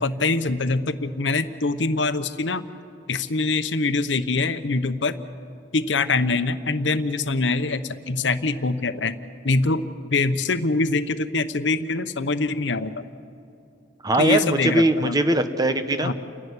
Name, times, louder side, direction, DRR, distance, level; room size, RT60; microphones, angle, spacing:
voice 1, 0.0-2.6 3.1-5.1 5.7-9.2 9.4-9.8 10.1-12.9 14.2-15.2 16.0-16.1, left 3 dB, 75° left, 11 dB, 0.9 m, -24 dB
voice 2, 14.0-16.1, right 1 dB, 20° right, 8 dB, 1.0 m, -21 dB
29.5 x 11.0 x 9.7 m, 2.6 s
head